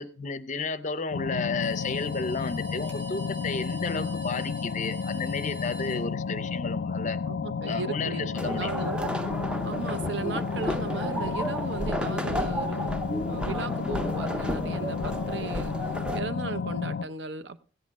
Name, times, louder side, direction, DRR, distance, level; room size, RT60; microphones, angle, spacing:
voice 1, 0.0-7.2 7.7-8.9, left 4 dB, 40° left, 0.6 m, -32 dB
sound 1, 1.1-17.1, left 5 dB, 85° left, 0.4 m, -32 dB
sound 2, 1.6-6.6, right 1 dB, 45° right, 4.9 m, -47 dB
voice 2, 7.3-9.3 9.6-12.9 13.2-15.8 16.1-17.6, right 4 dB, 75° right, 0.7 m, -36 dB
sound 3, 8.3-16.2, equal, 5° right, 0.5 m, -32 dB
16.0 x 8.6 x 3.6 m
head